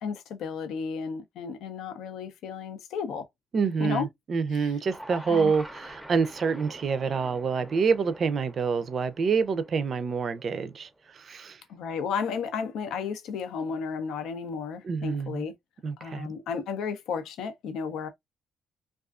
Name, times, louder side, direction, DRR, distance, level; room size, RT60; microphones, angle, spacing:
voice 1, 0.0-3.3 3.8-4.1 4.5-4.8 5.3-5.5 11.7-15.5 16.0-18.1, left 6 dB, 85° left, 0.5 m, -33 dB
voice 2, 3.5-11.6 14.8-15.4 15.8-16.3, right 5 dB, 50° right, 0.4 m, -27 dB
sound 1, 4.8-11.1, equal, 5° right, 0.5 m, -46 dB
2.4 x 2.3 x 2.3 m
cardioid pair, 90°, 0 cm